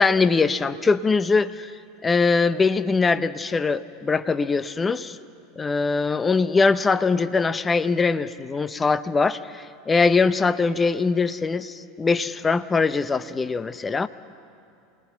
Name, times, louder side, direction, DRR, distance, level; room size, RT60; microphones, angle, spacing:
voice 1, 0.0-1.7 2.0-5.2 5.6-14.1, left 4 dB, 20° left, 14 dB, 0.9 m, -22 dB
28.5 x 19.5 x 6.0 m, 2.5 s
figure-of-eight pair, 80°, 0 cm